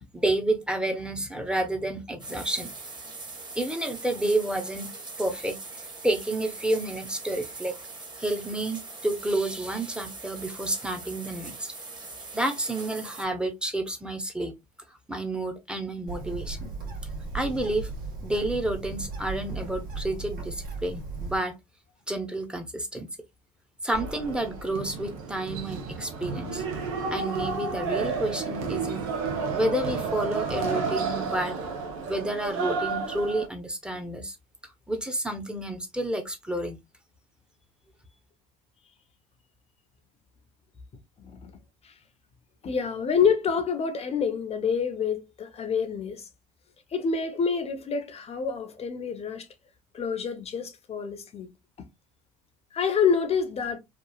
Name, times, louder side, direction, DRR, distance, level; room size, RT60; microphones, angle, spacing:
voice 1, 0.1-2.7 3.6-4.9 5.2-5.6 6.0-7.8 8.2-11.7 12.3-14.5 15.1-16.7 17.3-17.9 18.2-21.5 22.1-23.1 23.8-26.6 27.1-29.1 29.5-31.6 32.1-34.4 34.9-36.8, right 1 dB, 5° right, 0.8 m, -30 dB
sound 1, 2.2-13.3, right 3 dB, 25° right, 1.2 m, -41 dB
Bird, 16.1-21.4, right 3 dB, 55° right, 1.3 m, -36 dB
sound 2, 23.9-33.5, right 4 dB, 80° right, 0.8 m, -31 dB
voice 2, 41.2-41.6 41.8-41.9 42.6-46.3 46.9-49.5 49.9-51.5 51.8-51.9 52.7-53.8, left 6 dB, 35° left, 0.7 m, -27 dB
3.0 x 2.4 x 2.3 m
hypercardioid pair, 75°, 18 cm